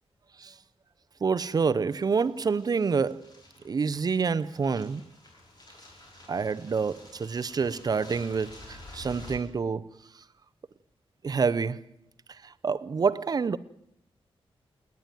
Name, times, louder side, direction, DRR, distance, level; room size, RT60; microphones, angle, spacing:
voice 1, 1.2-3.3 3.6-5.1 6.3-9.9 11.2-11.9 12.4-13.6, right 5 dB, 40° right, 0.7 m, -27 dB
sound 1, 1.9-9.4, left 2 dB, 40° left, 5.4 m, -50 dB
28.5 x 10.5 x 9.1 m
wide cardioid pair, 180°, 10 cm